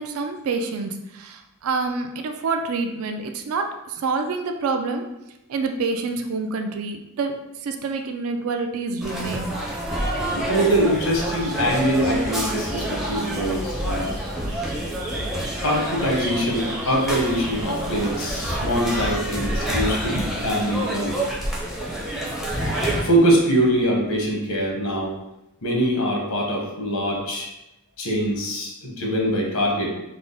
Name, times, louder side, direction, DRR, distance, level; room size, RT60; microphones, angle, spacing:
voice 1, 0.0-5.1 5.5-9.6, right 4 dB, 70° right, 6 dB, 0.4 m, -27 dB
sound 1, 9.0-23.0, right 1 dB, ahead, 0.5 m, -28 dB
voice 2, 10.4-14.2 15.6-21.2 23.0-25.2 25.6-27.5 28.0-29.9, equal, 80° left, -1 dB, 0.9 m, -23 dB
Bird vocalization bird call bird song, 11.1-19.5, right 2 dB, 40° right, 0.7 m, -41 dB
3.6 x 2.0 x 3.6 m, 0.90 s
head